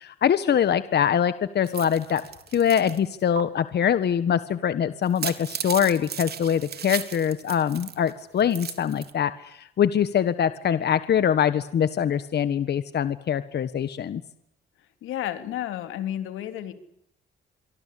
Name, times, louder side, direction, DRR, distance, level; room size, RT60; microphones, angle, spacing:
voice 1, 0.0-2.2 2.5-14.2, left 8 dB, 55° left, 13 dB, 1.5 m, -23 dB
sound 1, 1.6-3.0 3.4-3.5 5.0-8.1 8.4-9.1, right 7 dB, 55° right, 3.5 m, -35 dB
voice 2, 15.0-16.7, left 11 dB, 90° left, 9 dB, 3.4 m, -31 dB
26.5 x 24.0 x 8.6 m, 0.76 s
cardioid pair, 90°, 20 cm